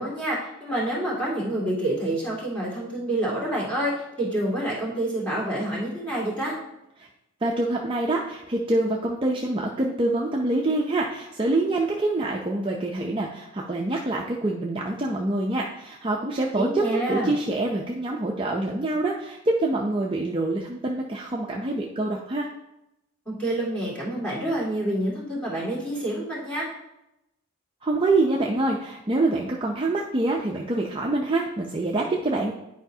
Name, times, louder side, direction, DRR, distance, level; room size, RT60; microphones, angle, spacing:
voice 1, 0.0-6.6 16.5-17.3 23.3-26.7, right 1 dB, 5° left, -6 dB, 2.1 m, -28 dB
voice 2, 7.4-22.5 27.8-32.5, right 2 dB, 25° right, -1 dB, 0.4 m, -26 dB
10.0 x 4.8 x 2.7 m, 0.89 s
head